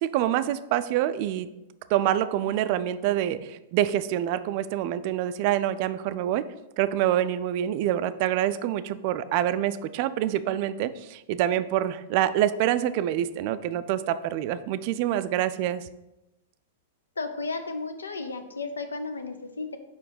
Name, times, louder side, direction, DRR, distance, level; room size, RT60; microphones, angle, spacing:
voice 1, 0.0-1.5 1.9-6.4 6.8-15.8, right 12 dB, 45° right, 13 dB, 0.3 m, -26 dB
voice 2, 17.2-19.8, left 3 dB, 80° left, 8 dB, 0.6 m, -33 dB
5.0 x 4.8 x 4.8 m, 0.96 s
figure-of-eight pair, 100°, 0 cm